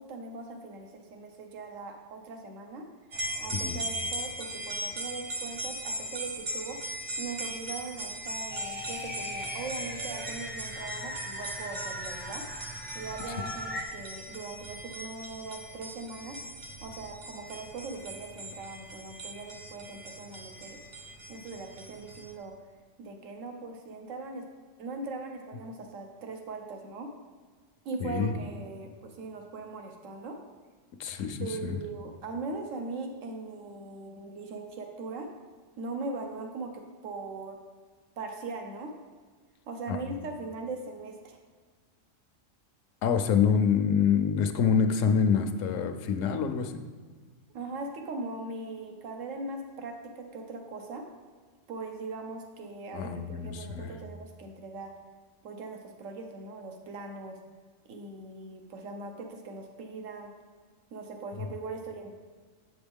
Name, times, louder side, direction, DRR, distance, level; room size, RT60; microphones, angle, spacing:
voice 1, 0.0-2.9 3.4-6.8 7.2-16.4 16.8-20.8 21.3-22.5 23.0-24.5 24.8-27.1 27.8-30.4 31.4-35.3 35.8-37.6 38.2-38.9 39.7-41.4 47.5-51.0 51.7-54.9 55.4-57.4 57.9-60.3 60.9-62.2, right 3 dB, 80° right, 4 dB, 1.2 m, -40 dB
sound 1, 3.1-22.3, right 1 dB, 50° right, 0.9 m, -39 dB
sound 2, 8.5-13.8, left 1 dB, 10° right, 0.5 m, -39 dB
voice 2, 28.0-28.4 31.0-31.7 39.9-40.1 43.0-46.8 52.9-53.9, left 7 dB, 80° left, 7 dB, 1.0 m, -26 dB
7.7 x 7.0 x 3.5 m, 1.5 s
omnidirectional pair, 1.3 m